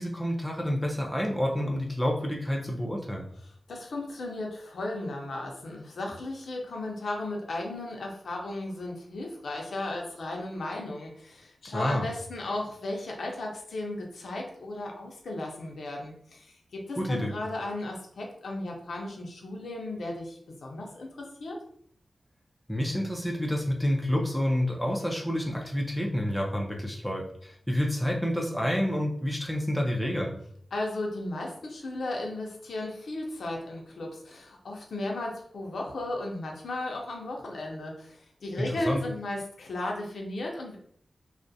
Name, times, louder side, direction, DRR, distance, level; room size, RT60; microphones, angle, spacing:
voice 1, 0.0-3.3 11.7-12.1 16.9-17.3 22.7-30.4 38.6-39.0, equal, 5° left, -1 dB, 0.5 m, -29 dB
voice 2, 3.7-21.6 30.7-40.8, left 2 dB, 85° left, 0 dB, 0.6 m, -35 dB
2.3 x 2.1 x 2.6 m, 0.63 s
wide cardioid pair, 105°, 0 cm